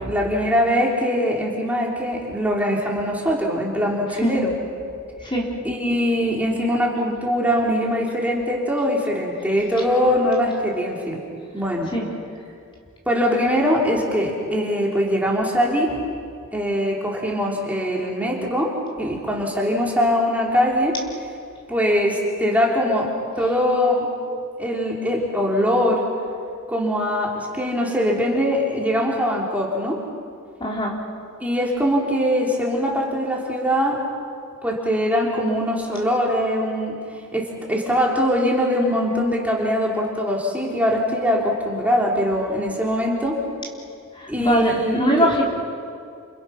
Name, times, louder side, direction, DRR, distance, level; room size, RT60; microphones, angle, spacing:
voice 1, 0.0-4.5 5.6-11.2 11.5-11.9 13.1-15.9 16.5-18.7 19.0-21.0 21.7-23.1 23.4-24.1 24.6-26.0 26.7-30.0 31.4-34.0 34.6-37.0 37.3-43.4 44.3-45.0, equal, 5° right, -3 dB, 3.5 m, -22 dB
voice 2, 30.6-31.0 44.2-45.4, equal, 25° left, -2 dB, 3.5 m, -21 dB
29.0 x 29.0 x 5.9 m, 2.3 s
head